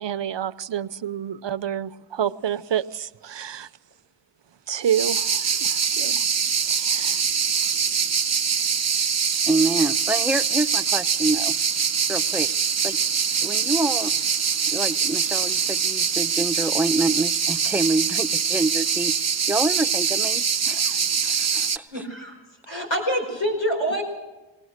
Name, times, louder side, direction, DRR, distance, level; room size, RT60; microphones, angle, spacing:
voice 1, 0.0-3.7 4.7-6.2 6.7-7.2, right 9 dB, 70° right, 15 dB, 0.7 m, -28 dB
sound 1, 4.8-21.8, right 6 dB, 35° right, 0.6 m, -23 dB
voice 2, 9.5-11.5 12.1-12.5 12.8-13.0 13.4-14.1 14.7-22.0, right 2 dB, 5° right, 7 dB, 0.7 m, -27 dB
voice 3, 21.9-22.4 22.7-24.0, equal, 90° left, 0 dB, 5.2 m, -26 dB
21.0 x 19.0 x 6.5 m, 1.1 s
wide cardioid pair, 55°, 45 cm